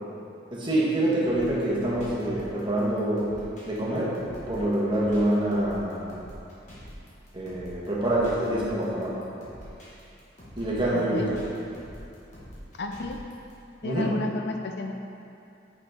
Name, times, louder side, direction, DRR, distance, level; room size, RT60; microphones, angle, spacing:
voice 1, 0.5-3.4 3.7-4.2 4.5-6.0 7.3-9.2 10.6-11.4 13.8-14.2, right 1 dB, 25° right, -7 dB, 1.3 m, -26 dB
sound 1, 1.2-13.5, equal, 40° left, 1.7 m, -45 dB
voice 2, 10.9-11.3 12.8-13.2 13.8-14.9, left 3 dB, 55° left, 4 dB, 0.4 m, -32 dB
6.0 x 5.9 x 4.6 m, 2.6 s
head